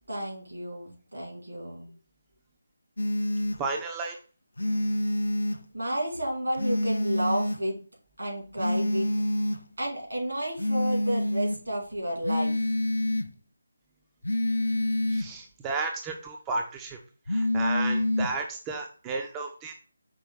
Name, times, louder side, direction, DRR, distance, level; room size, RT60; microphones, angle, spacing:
voice 1, 0.1-1.9 5.7-7.8 8.2-9.1 9.8-12.5, right 1 dB, 75° right, -1 dB, 2.0 m, -31 dB
sound 1, 3.0-3.6 4.6-5.6 6.6-7.6 8.6-9.6 10.6-11.6 12.2-13.3 14.2-15.3 17.3-18.3, left 1 dB, 70° left, 0.4 m, -27 dB
voice 2, 3.6-4.2 15.1-17.0 17.3-19.7, right 3 dB, 15° right, 2 dB, 0.3 m, -33 dB
5.3 x 2.8 x 3.4 m, 0.38 s
figure-of-eight pair, 155°, 0 cm